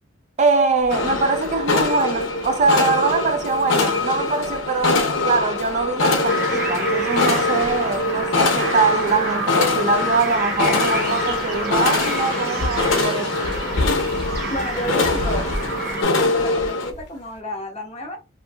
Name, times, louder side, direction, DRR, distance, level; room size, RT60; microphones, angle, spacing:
voice 1, 0.4-13.5, right 4 dB, 35° right, 0.4 m, -22 dB
sound 1, 0.8-17.4, left 1 dB, 60° left, 0.9 m, -36 dB
sound 2, 0.9-16.9, left 3 dB, 90° left, 0.6 m, -23 dB
sound 3, 6.2-16.0, right 2 dB, 50° right, 0.8 m, -29 dB
voice 2, 14.5-15.5 16.2-18.2, equal, 35° left, 0.7 m, -30 dB
2.7 x 2.6 x 2.3 m
head